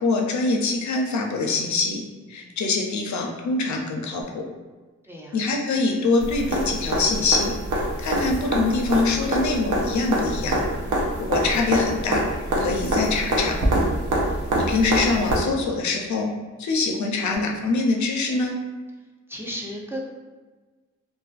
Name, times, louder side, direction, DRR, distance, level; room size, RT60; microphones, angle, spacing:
voice 1, 0.0-2.0 2.3-4.4 5.3-7.5 8.0-10.6 11.2-12.2 12.6-13.6 14.6-16.3 16.6-18.6, left 3 dB, 70° left, 1 dB, 0.4 m, -24 dB
voice 2, 5.0-5.4 14.0-14.4 19.3-20.1, equal, 10° right, -3 dB, 0.4 m, -35 dB
sound 1, 6.2-15.3 17.3-17.4, right 1 dB, 75° right, 0.6 m, -25 dB
2.4 x 2.3 x 2.3 m, 1.3 s
cardioid pair, 65°, 30 cm